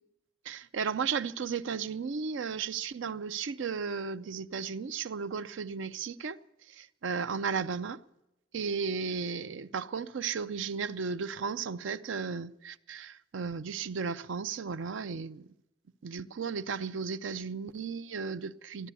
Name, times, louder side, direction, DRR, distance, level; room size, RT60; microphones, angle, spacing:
voice 1, 0.5-6.4 6.7-8.0 8.5-15.5 16.0-18.9, right 5 dB, 75° right, 0.5 m, -34 dB
14.0 x 11.0 x 8.3 m
head